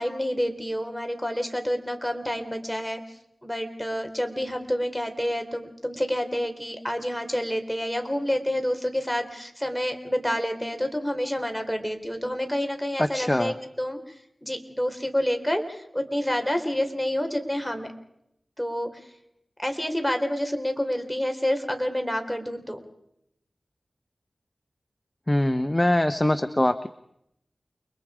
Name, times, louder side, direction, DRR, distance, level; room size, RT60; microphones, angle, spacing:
voice 1, 0.0-3.0 3.4-14.0 14.4-17.9 18.6-19.0 19.6-22.8, equal, ahead, 5 dB, 3.8 m, -28 dB
voice 2, 13.0-13.5 25.3-26.9, left 1 dB, 20° left, 10 dB, 0.9 m, -23 dB
29.5 x 22.5 x 5.0 m, 0.78 s
wide cardioid pair, 55°, 0 cm